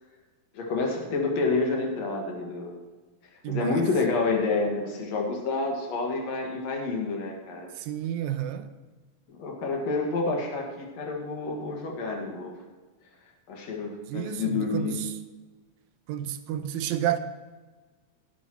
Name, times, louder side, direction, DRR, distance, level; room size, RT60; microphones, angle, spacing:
voice 1, 0.5-2.7 3.5-7.7 9.3-12.5 13.5-15.0, left 3 dB, 65° left, 3.0 m, -28 dB
voice 2, 3.4-3.8 7.8-8.7 14.1-15.1 16.1-17.2, right 11 dB, 80° right, 2.0 m, -30 dB
17.0 x 11.0 x 3.1 m
omnidirectional pair, 3.3 m